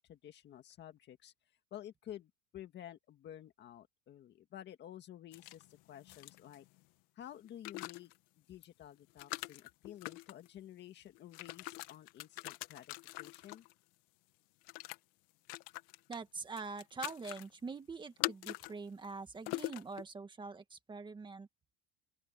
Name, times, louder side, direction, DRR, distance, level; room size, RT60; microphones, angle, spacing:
voice 1, 0.0-1.3 1.7-6.7 7.2-8.1 8.4-13.7, left 11 dB, 30° left, 1.8 m, -52 dB
sound 1, 5.3-6.8 7.4-8.2 8.6-8.7 9.1-10.5 11.1-13.7 14.7-15.0 15.5-16.2 16.5-17.5 18.2-18.7 19.0-19.1 19.5-20.0, left 21 dB, 65° left, 1.9 m, -43 dB
voice 2, 16.1-21.5, right 4 dB, 15° right, 1.8 m, -44 dB
open air
cardioid pair, 165°, 33 cm